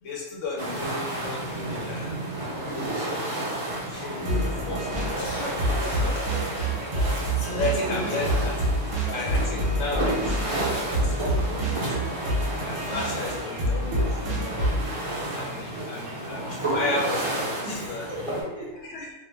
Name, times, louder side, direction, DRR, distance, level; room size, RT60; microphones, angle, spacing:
voice 1, 0.0-2.2 2.5-3.3 3.7-4.3 4.7-5.1 5.5-6.2 7.5-8.6 9.1-12.2 12.6-14.6 15.3-18.1 18.9-19.1, left 2 dB, 75° left, -3 dB, 0.9 m, -34 dB
sound 1, 0.6-18.4, right 1 dB, 30° right, 0.7 m, -31 dB
voice 2, 4.2-4.6 6.0-6.3 7.3-8.4 8.7-9.6 16.4-16.5 17.6-18.8, left 1 dB, 30° left, -6 dB, 0.8 m, -37 dB
sound 2, 4.2-14.9, right 1 dB, 70° right, 1.0 m, -28 dB
Cough, 5.2-5.5 5.8-6.8 7.5-8.2 9.3-9.7, left 1 dB, 60° left, 0.5 m, -38 dB
2.5 x 2.1 x 3.2 m, 1.1 s
omnidirectional pair, 1.3 m